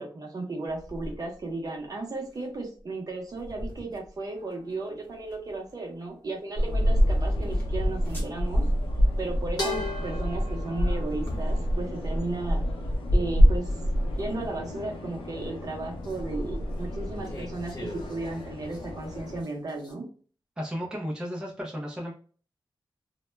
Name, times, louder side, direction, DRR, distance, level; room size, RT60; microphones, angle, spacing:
voice 1, 0.0-8.6 9.2-12.6 13.1-13.7 14.2-20.1, right 2 dB, 45° right, 1 dB, 0.6 m, -35 dB
sound 1, 0.7-16.4, equal, 20° left, 0.9 m, -47 dB
sound 2, 4.2-5.3 8.5-8.8 9.6-12.0 12.8-13.3 14.2-15.3 15.8-16.7 17.2-18.8 19.1-19.9, left 1 dB, 50° left, 0.9 m, -39 dB
sound 3, 6.6-19.4, equal, 80° left, 0.6 m, -27 dB
voice 2, 20.6-22.1, equal, 10° right, -2 dB, 0.4 m, -34 dB
2.1 x 2.1 x 3.1 m, 0.42 s
wide cardioid pair, 160°, 9 cm